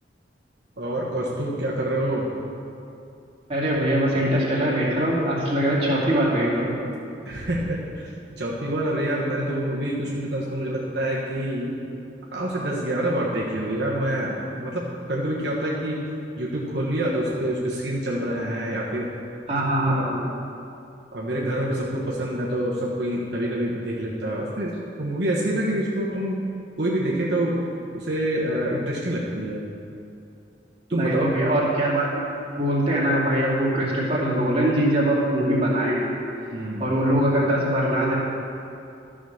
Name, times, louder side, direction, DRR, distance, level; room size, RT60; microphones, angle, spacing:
voice 1, 0.8-2.2 7.2-8.1 8.4-11.7 12.3-14.8 15.1-16.0 16.4-19.1 19.8-20.1 21.1-24.7 25.0-26.4 26.8-27.6 27.9-29.6 30.9-31.3 36.5-36.9, right 1 dB, 70° right, -5 dB, 1.3 m, -26 dB
voice 2, 3.5-6.7 19.5-20.2 30.9-32.2 32.6-36.1 36.8-38.1, right 1 dB, 35° right, -6 dB, 2.4 m, -22 dB
13.0 x 5.1 x 6.4 m, 2.6 s
head